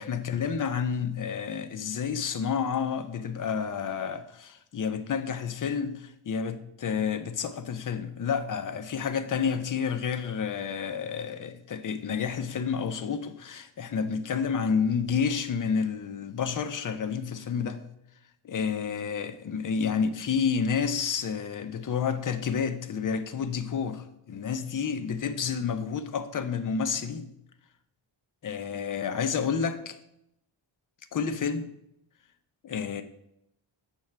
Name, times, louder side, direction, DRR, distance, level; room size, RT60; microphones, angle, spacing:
voice 1, 0.0-17.9 18.4-27.3 28.4-30.0 31.1-31.7 32.6-33.0, left 6 dB, 40° left, 0.5 m, -30 dB
6.2 x 3.2 x 5.7 m
wide cardioid pair, 115°, 49 cm